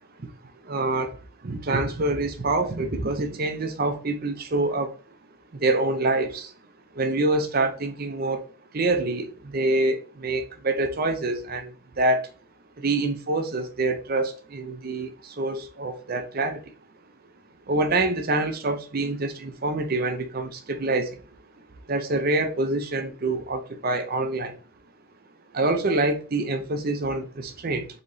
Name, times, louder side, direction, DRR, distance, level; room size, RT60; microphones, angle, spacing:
voice 1, 0.6-4.9 5.5-6.5 6.9-8.5 8.7-12.3 12.8-16.7 17.7-21.2 21.9-24.6 25.5-27.9, right 2 dB, 45° right, 0.6 m, -26 dB
4.0 x 3.0 x 3.9 m
head